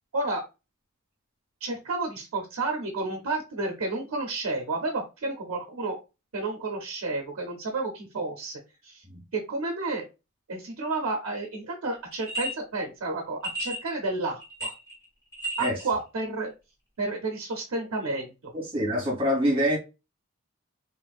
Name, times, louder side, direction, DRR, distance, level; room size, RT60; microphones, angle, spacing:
voice 1, 1.6-6.0 6.3-9.0 9.3-10.0 10.5-14.7 15.6-16.5 17.0-18.5, right 3 dB, 80° right, 0.6 m, -31 dB
sound 1, 12.1-12.5 13.4-13.9 14.4-15.0 15.3-15.8, equal, 15° left, 1.2 m, -33 dB
voice 2, 18.5-19.8, equal, 25° right, 1.3 m, -25 dB
3.2 x 2.5 x 2.3 m
head